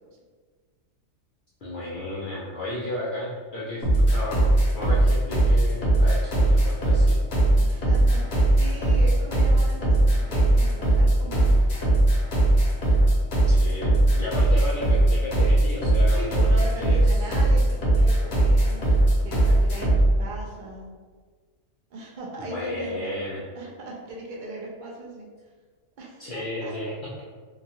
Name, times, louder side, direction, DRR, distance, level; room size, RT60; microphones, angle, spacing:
voice 1, 1.6-7.2 13.5-16.4 16.8-17.3 22.4-23.4 26.2-27.2, left 1 dB, 75° left, -6 dB, 0.4 m, -33 dB
sound 1, 3.8-20.1, right 1 dB, 55° left, 0.9 m, -19 dB
voice 2, 7.6-11.6 16.1-18.9 19.2-20.9 21.9-23.1 23.6-25.3 26.0-26.7, right 1 dB, 70° right, -3 dB, 0.4 m, -38 dB
2.9 x 2.3 x 2.7 m, 1.5 s
omnidirectional pair, 1.4 m